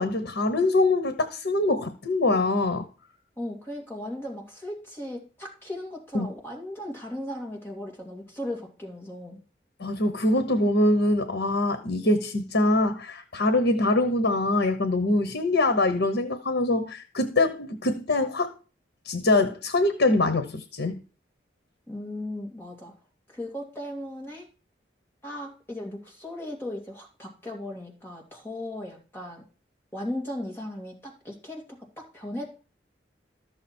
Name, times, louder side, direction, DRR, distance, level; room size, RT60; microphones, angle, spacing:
voice 1, 0.0-2.9 6.1-6.3 9.8-18.5 19.0-21.0, left 2 dB, 85° left, 1.1 m, -24 dB
voice 2, 3.4-9.4 21.9-22.9 23.3-24.5 25.2-29.4 29.9-32.5, left 1 dB, 10° left, 2.3 m, -37 dB
13.0 x 6.8 x 4.4 m
head